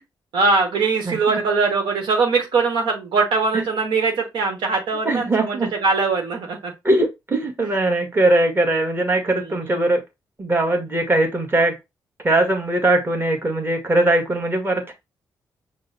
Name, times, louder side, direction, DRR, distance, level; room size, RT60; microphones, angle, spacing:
voice 1, 0.3-6.7, right 4 dB, 75° right, 1.2 m, -21 dB
voice 2, 1.0-1.4 3.5-3.6 5.0-5.7 6.8-10.0 10.4-11.7 12.2-14.9, right 2 dB, 30° right, 1.6 m, -20 dB
5.4 x 2.2 x 4.1 m
supercardioid pair, 60°, 8 cm